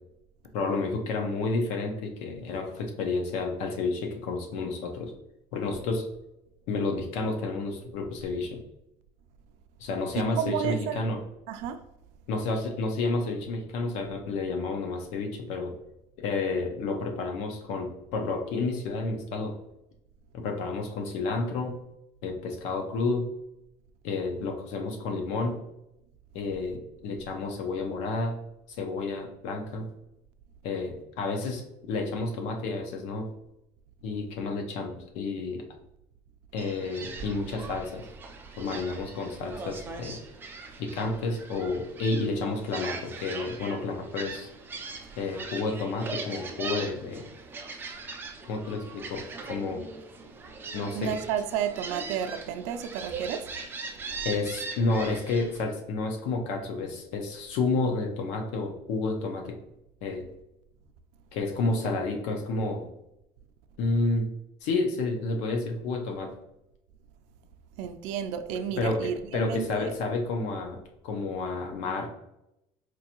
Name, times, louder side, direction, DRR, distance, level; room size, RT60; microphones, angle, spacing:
voice 1, 0.5-5.1 5.5-6.1 6.7-8.6 9.8-11.2 12.3-15.8 16.2-19.6 20.3-21.8 22.2-23.3 24.0-25.6 26.3-28.3 28.8-29.9 30.6-33.3 34.0-35.6 36.5-38.1 38.6-40.2 40.8-44.5 45.2-47.3 48.4-49.9 50.7-51.1 54.2-59.6 60.0-60.3 61.3-62.9 63.8-64.3 64.6-66.3 68.8-72.1, left 3 dB, 75° left, 4 dB, 0.8 m, -30 dB
voice 2, 10.1-11.1 11.5-11.8 50.9-53.5 67.8-69.9, right 9 dB, 80° right, 9 dB, 0.4 m, -32 dB
Gull seagull, 36.6-55.6, right 4 dB, 20° right, 0.4 m, -40 dB
4.5 x 2.6 x 2.9 m, 0.86 s
cardioid pair, 155°, 12 cm